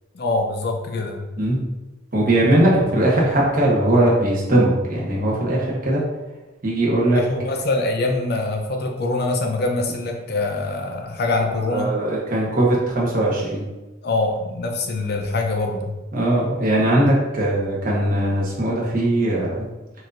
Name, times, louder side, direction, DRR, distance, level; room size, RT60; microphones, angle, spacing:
voice 1, 0.1-1.2 7.1-11.9 14.0-16.0, left 2 dB, 60° left, 3 dB, 0.6 m, -24 dB
voice 2, 2.1-6.0 6.6-7.2 11.7-13.6 16.1-19.7, right 1 dB, 50° right, -4 dB, 1.2 m, -19 dB
6.1 x 2.7 x 2.5 m, 1.1 s
head